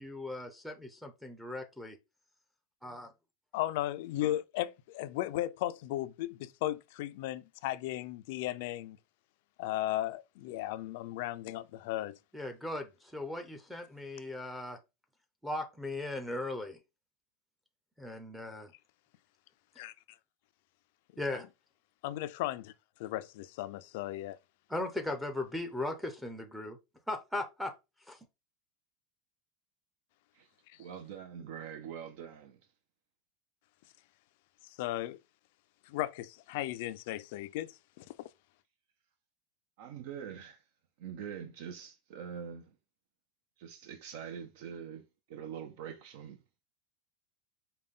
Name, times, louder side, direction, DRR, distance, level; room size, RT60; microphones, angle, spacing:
voice 1, 0.0-2.0 2.8-3.1 12.3-14.8 15.4-16.8 18.0-18.7 21.2-21.5 24.7-26.8 27.1-27.7 28.1-28.2, left 2 dB, ahead, 0.6 m, -38 dB
voice 2, 3.5-9.0 9.6-12.2 19.8-19.9 21.3-21.4 22.0-22.7 23.0-24.4 34.8-35.2 35.9-38.2, left 14 dB, 65° left, 0.4 m, -36 dB
voice 3, 30.8-32.6 39.8-40.6 41.0-42.7 43.6-46.4, right 8 dB, 65° right, 0.6 m, -44 dB
5.1 x 2.2 x 3.6 m
supercardioid pair, 160°, 0 cm